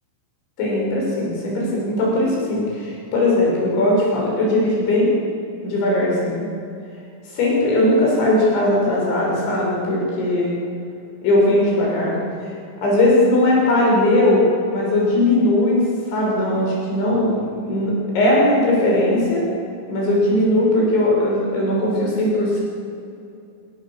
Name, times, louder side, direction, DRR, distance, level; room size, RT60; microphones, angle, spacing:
voice 1, 0.6-5.2 5.6-6.5 7.3-10.6 11.2-12.2 12.8-19.5 19.9-22.6, left 1 dB, 80° left, -3 dB, 9.0 m, -19 dB
28.5 x 26.5 x 7.5 m, 2.6 s
omnidirectional pair, 5.2 m